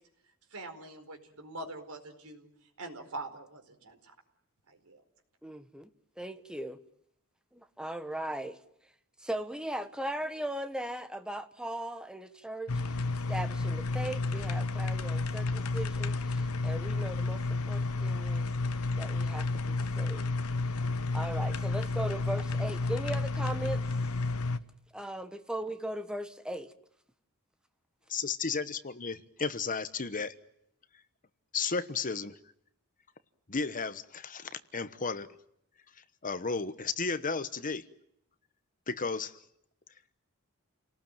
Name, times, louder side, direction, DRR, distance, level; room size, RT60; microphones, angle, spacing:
voice 1, 0.5-4.1 4.7-5.0, right 2 dB, 80° right, 4.7 m, -44 dB
voice 2, 5.4-6.8 7.5-8.6 9.2-12.7 13.3-18.5 19.0-20.3 21.1-23.8 24.9-26.7, right 1 dB, 5° right, 1.3 m, -38 dB
sound 1, 12.7-24.6, left 3 dB, 75° left, 1.1 m, -31 dB
voice 3, 28.1-30.3 31.5-32.4 33.5-35.4 36.2-37.8 38.9-39.3, left 4 dB, 40° left, 1.1 m, -33 dB
30.0 x 19.0 x 9.1 m
head